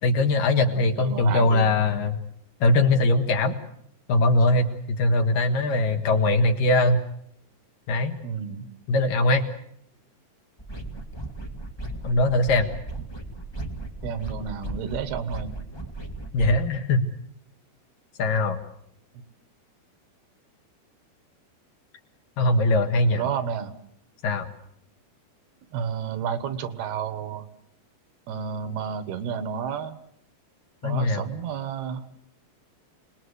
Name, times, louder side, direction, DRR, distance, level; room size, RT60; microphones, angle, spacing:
voice 1, 0.0-2.2 2.6-3.5 4.1-7.0 7.9-8.1 8.9-9.5 12.0-12.7 16.3-17.1 18.2-18.6 22.4-23.2 24.2-24.5 30.8-31.3, left 2 dB, 60° left, 6 dB, 2.9 m, -21 dB
voice 2, 0.6-1.7 8.2-8.7 14.0-15.5 23.1-23.7 25.7-27.5 28.3-30.0 30.8-32.0, right 7 dB, 70° right, 12 dB, 3.2 m, -31 dB
sound 1, 10.6-16.6, right 2 dB, 35° left, 0.4 m, -36 dB
28.0 x 20.5 x 8.1 m, 0.72 s
omnidirectional pair, 4.9 m